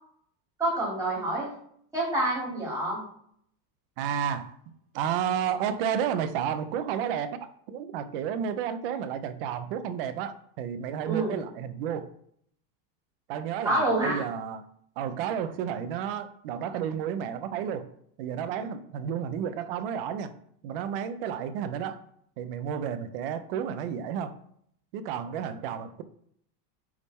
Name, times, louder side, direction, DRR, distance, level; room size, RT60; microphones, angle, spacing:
voice 1, 0.6-1.5 1.9-3.0 11.0-11.4 13.6-14.2, right 1 dB, 5° right, -7 dB, 2.7 m, -27 dB
voice 2, 4.0-4.5 4.9-12.1 13.3-14.6 15.0-17.9 18.2-20.3 20.6-22.0 22.4-24.3 24.9-26.0, right 8 dB, 40° right, 11 dB, 0.4 m, -31 dB
9.4 x 3.6 x 4.2 m, 0.67 s
supercardioid pair, 175°, 50 cm